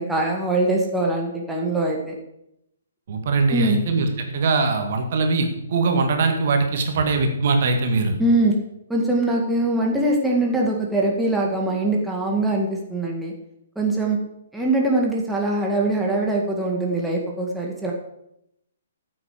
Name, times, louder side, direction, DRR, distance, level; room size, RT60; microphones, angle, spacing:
voice 1, 0.0-2.2 3.5-3.8 8.2-8.5 8.9-13.3 13.8-14.2 14.5-17.9, right 2 dB, 5° right, -2 dB, 1.9 m, -22 dB
voice 2, 3.1-8.2, right 3 dB, 45° right, 4 dB, 2.1 m, -21 dB
14.5 x 8.5 x 5.0 m, 0.81 s
figure-of-eight pair, 125°, 0 cm